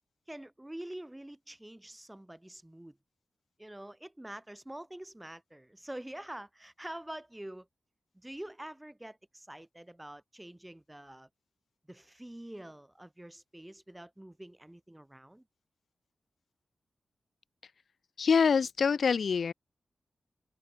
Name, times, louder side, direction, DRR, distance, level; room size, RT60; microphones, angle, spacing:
voice 1, 0.3-3.0 3.6-7.7 8.1-11.3 11.9-15.4, right 1 dB, 10° right, 5.0 m, -46 dB
voice 2, 18.2-19.5, left 6 dB, 70° left, 1.2 m, -25 dB
cardioid pair, 60°, 0 cm